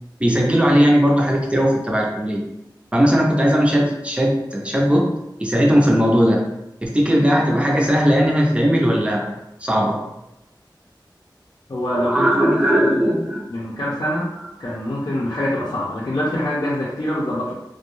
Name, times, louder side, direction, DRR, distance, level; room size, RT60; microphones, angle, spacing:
voice 1, 0.2-2.4 2.9-5.1 5.4-6.4 6.8-9.3 9.6-10.0 11.9-13.5, equal, 15° right, -2 dB, 0.6 m, -18 dB
voice 2, 11.7-13.2 13.5-14.3 14.6-17.5, left 1 dB, 55° left, -7 dB, 0.5 m, -24 dB
2.4 x 2.1 x 3.1 m, 0.90 s
wide cardioid pair, 55°, 8 cm